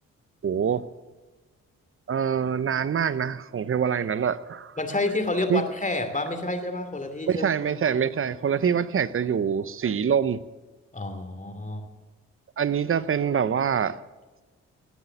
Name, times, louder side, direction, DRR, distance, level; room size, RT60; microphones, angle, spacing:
voice 1, 0.4-0.9 2.1-4.7 5.5-5.6 7.3-10.4 12.6-14.0, right 7 dB, 35° right, 0.8 m, -25 dB
voice 2, 4.8-7.5 10.9-11.9, left 2 dB, 20° left, 2.7 m, -29 dB
16.5 x 9.6 x 7.1 m
hypercardioid pair, 40°, 36 cm